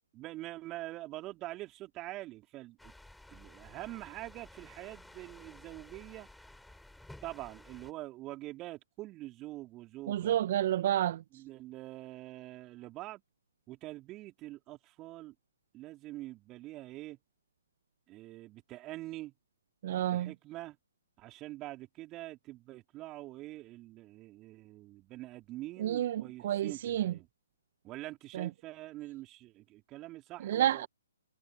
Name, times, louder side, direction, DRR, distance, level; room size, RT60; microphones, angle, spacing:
voice 1, 0.1-2.9 3.3-6.3 7.2-10.4 11.3-13.2 13.7-15.3 15.7-17.2 18.1-19.3 20.1-20.8 21.2-27.3 27.8-30.9, right 17 dB, 20° right, 3.9 m, -45 dB
sound 1, 2.8-7.9, left 1 dB, ahead, 5.8 m, -54 dB
voice 2, 10.1-11.2 19.8-20.3 25.8-27.1 28.3-28.5 30.4-30.9, right 12 dB, 45° right, 1.4 m, -30 dB
figure-of-eight pair, 135°, 0 cm